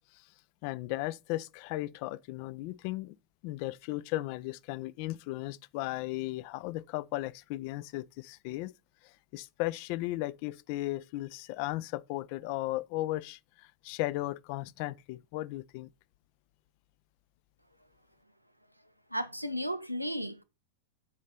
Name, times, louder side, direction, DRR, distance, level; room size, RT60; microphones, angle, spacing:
voice 1, 0.6-3.2 3.4-8.7 9.0-15.9, left 17 dB, 45° left, 0.4 m, -36 dB
voice 2, 19.1-20.4, equal, 90° right, 0.6 m, -34 dB
8.4 x 4.1 x 5.1 m
figure-of-eight pair, 90°, 0 cm